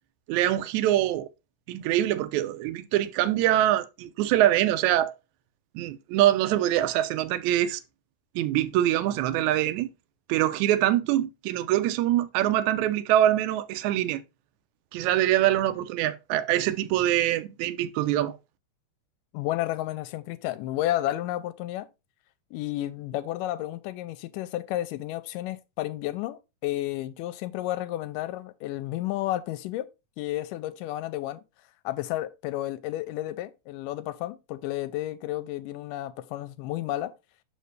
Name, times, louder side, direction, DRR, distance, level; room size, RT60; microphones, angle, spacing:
voice 1, 0.3-1.3 1.7-5.1 5.7-7.8 8.3-9.9 10.3-14.2 14.9-18.3, right 13 dB, 75° right, 1.8 m, -24 dB
voice 2, 19.3-21.9 22.5-29.9 30.2-31.4 31.9-37.1, left 15 dB, 85° left, 2.2 m, -32 dB
6.6 x 5.0 x 3.2 m
omnidirectional pair, 3.8 m